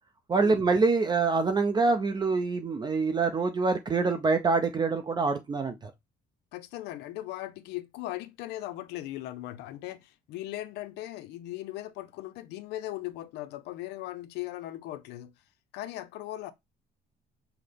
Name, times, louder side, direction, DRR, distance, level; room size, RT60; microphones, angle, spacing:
voice 1, 0.3-5.9, right 4 dB, 25° right, 0.5 m, -25 dB
voice 2, 6.5-15.3 15.7-16.5, left 15 dB, 85° left, 0.5 m, -38 dB
5.8 x 2.0 x 3.3 m
cardioid pair, 110°, 17 cm